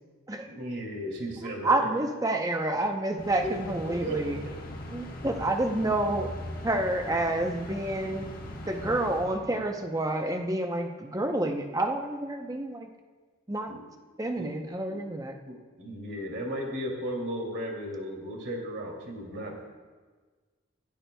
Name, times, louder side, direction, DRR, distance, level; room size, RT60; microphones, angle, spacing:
voice 1, 0.5-1.9 3.4-3.5 3.8-4.2 13.7-13.8 14.4-14.5 14.9-15.0 15.5-19.6, equal, 55° right, 1 dB, 2.3 m, -35 dB
voice 2, 1.4-4.4 4.9-6.3 6.6-8.3 8.7-12.9 13.5-13.7 14.2-15.4, right 2 dB, 15° right, 4 dB, 0.7 m, -29 dB
sound 1, 3.2-10.0, left 1 dB, 45° left, 1.1 m, -40 dB
16.5 x 10.5 x 2.3 m, 1.4 s
head